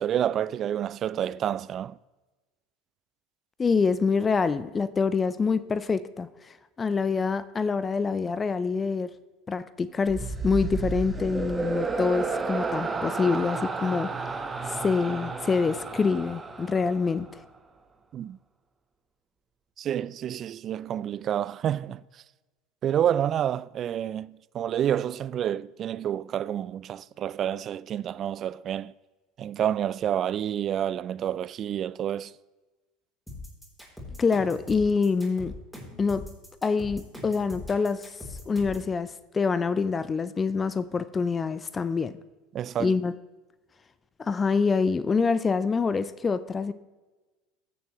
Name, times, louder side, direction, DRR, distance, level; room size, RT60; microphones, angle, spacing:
voice 1, 0.0-2.0 18.1-18.4 19.8-22.0 22.8-28.9 29.4-32.3 42.5-43.0, right 10 dB, 40° right, 0.3 m, -29 dB
voice 2, 3.6-6.3 6.8-9.1 9.5-14.1 14.7-17.4 34.2-35.5 36.0-36.2 36.6-38.1 38.5-42.1 42.8-43.1 44.2-46.7, left 5 dB, 25° left, 0.5 m, -26 dB
sound 1, 10.1-17.4, right 3 dB, 20° right, 1.1 m, -32 dB
sound 2, 33.3-38.9, left 2 dB, ahead, 3.6 m, -41 dB
16.5 x 6.8 x 3.1 m
hypercardioid pair, 75°, 0 cm